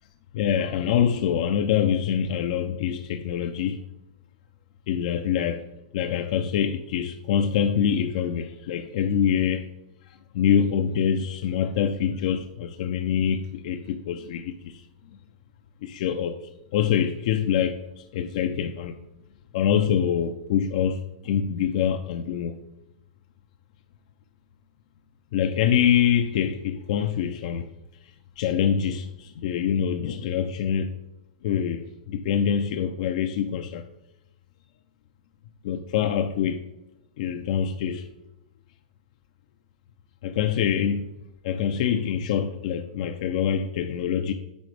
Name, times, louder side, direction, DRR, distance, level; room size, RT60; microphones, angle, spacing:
voice 1, 0.3-3.8 4.9-5.7 5.9-9.7 10.1-14.8 15.8-19.0 19.5-22.6 25.3-27.7 28.4-30.9 31.4-33.9 35.6-36.7 37.2-38.1 40.2-41.1 41.4-44.3, left 8 dB, 60° left, 0.5 m, -25 dB
9.4 x 3.8 x 3.3 m
hypercardioid pair, 130°, 4 cm